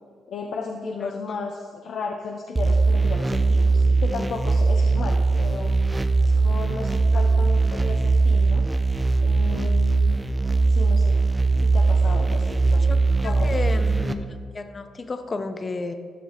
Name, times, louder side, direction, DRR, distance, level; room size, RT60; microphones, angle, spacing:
voice 1, 0.3-5.7 6.2-8.6 9.2-10.2 10.7-11.2 11.6-12.9 13.2-13.8, left 4 dB, 70° left, 1 dB, 0.7 m, -34 dB
sound 1, 2.6-14.1, right 3 dB, 20° right, 0.5 m, -20 dB
voice 2, 12.9-14.2 14.5-15.9, left 3 dB, 35° left, 9 dB, 0.7 m, -32 dB
12.5 x 6.0 x 4.0 m, 2.1 s
cardioid pair, 85°, 0 cm